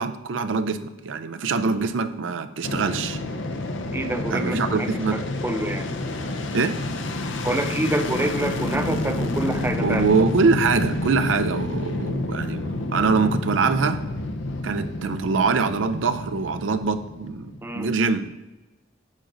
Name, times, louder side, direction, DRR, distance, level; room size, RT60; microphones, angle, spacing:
voice 1, 0.0-3.2 4.3-5.2 6.5-6.8 9.8-14.0 14.6-18.3, right 4 dB, 75° right, 10 dB, 0.5 m, -24 dB
Fixed-wing aircraft airplane, 2.6-17.8, left 2 dB, 70° left, 0.7 m, -29 dB
voice 2, 3.9-5.9 7.4-10.0 17.6-17.9, right 1 dB, 10° right, 7 dB, 0.5 m, -27 dB
8.9 x 5.1 x 3.9 m, 1.1 s
head